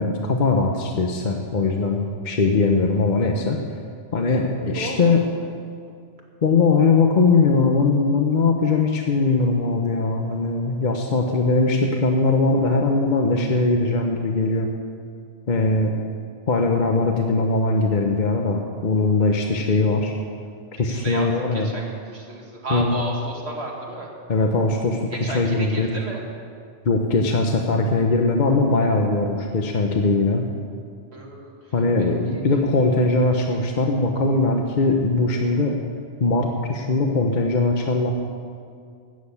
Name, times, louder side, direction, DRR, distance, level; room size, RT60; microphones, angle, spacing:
voice 1, 0.0-3.6 4.1-5.2 6.4-14.7 15.5-15.9 16.5-20.1 20.8-21.7 22.7-23.0 24.3-25.9 26.8-30.4 31.7-35.8 36.2-38.1, left 3 dB, 45° left, 2 dB, 0.9 m, -20 dB
voice 2, 4.7-5.3 20.9-24.1 25.1-26.2 31.1-32.4, right 1 dB, 65° right, -1 dB, 2.3 m, -33 dB
12.5 x 7.6 x 8.5 m, 2.3 s
omnidirectional pair, 1.2 m